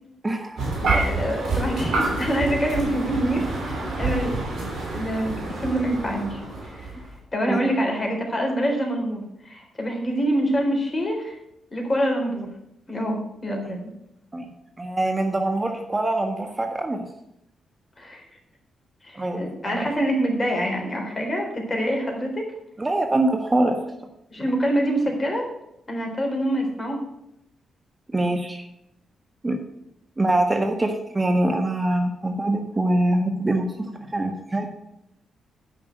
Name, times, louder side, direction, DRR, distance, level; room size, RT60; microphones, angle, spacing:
voice 1, 0.2-0.7 7.5-7.7 14.3-14.5 14.8-17.1 19.1-19.9 22.8-23.8 28.1-28.7 29.4-29.6 30.2-34.7, right 1 dB, 25° right, 4 dB, 1.6 m, -24 dB
sound 1, 0.6-7.1, right 2 dB, 75° right, 3.2 m, -27 dB
voice 2, 0.8-4.4 4.9-6.9 7.3-11.4 11.7-12.5 12.9-13.9 18.0-18.2 19.0-22.4 24.3-25.5 25.9-27.0, equal, 35° left, 1 dB, 4.1 m, -26 dB
9.4 x 6.0 x 7.8 m, 0.81 s
hypercardioid pair, 45°, 0 cm